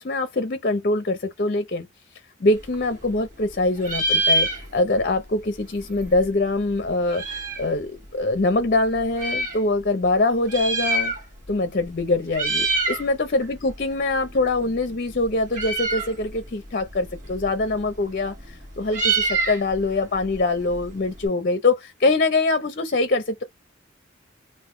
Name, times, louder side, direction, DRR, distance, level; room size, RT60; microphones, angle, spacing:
voice 1, 0.0-1.9 2.4-11.1 11.5-23.4, left 2 dB, 50° left, 0.6 m, -23 dB
Meow, 2.5-3.5 3.8-5.1 5.3-5.4 5.6-7.7 8.4-9.6 10.3-11.5 11.8-12.0 12.3-13.1 13.4-21.3, right 2 dB, 45° right, 1.7 m, -27 dB
3.8 x 2.6 x 2.6 m
head